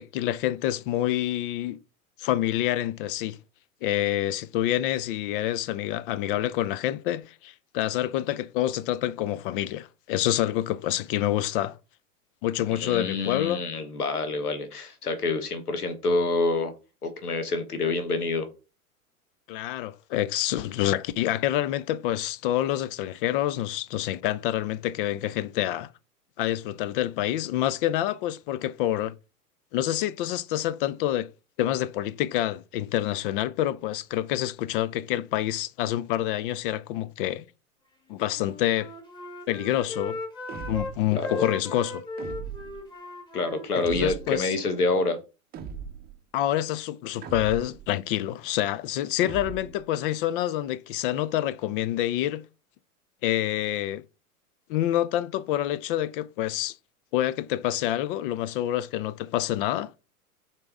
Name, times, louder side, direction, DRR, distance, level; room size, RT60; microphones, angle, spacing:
voice 1, 0.0-1.8 2.2-3.4 3.8-11.8 12.4-13.6 19.5-25.9 26.4-29.1 29.7-31.3 31.6-37.5 38.1-38.9 39.5-40.2 40.7-42.0 43.7-44.5 46.3-52.4 53.2-54.0 54.7-56.8 57.1-59.9, left 13 dB, 40° left, 0.5 m, -27 dB
voice 2, 12.7-16.7 17.0-18.5 41.1-41.5 43.3-45.2, left 3 dB, 85° left, 1.3 m, -27 dB
Wind instrument woodwind instrument, 38.2-40.9 41.2-44.8, left 2 dB, 10° left, 1.5 m, -38 dB
sound 1, 40.5-41.1 42.2-42.9 43.8-44.4 45.5-46.2 47.2-47.9 49.2-49.9, right 7 dB, 20° right, 0.7 m, -38 dB
6.5 x 4.2 x 3.6 m
hypercardioid pair, 100°, 44 cm